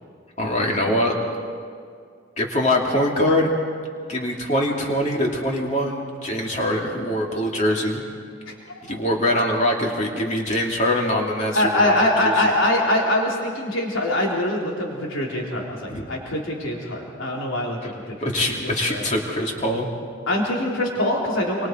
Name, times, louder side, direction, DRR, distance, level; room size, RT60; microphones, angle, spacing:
voice 1, 0.4-1.1 2.4-3.5 4.1-8.0 8.8-11.9 12.2-12.5 15.9-16.1 17.8-19.9, left 1 dB, 35° left, -1 dB, 2.9 m, -23 dB
voice 2, 8.5-9.0 11.5-18.3 18.9-19.0 20.3-21.7, left 1 dB, 80° left, -2 dB, 3.6 m, -23 dB
28.0 x 24.5 x 4.6 m, 2.2 s
head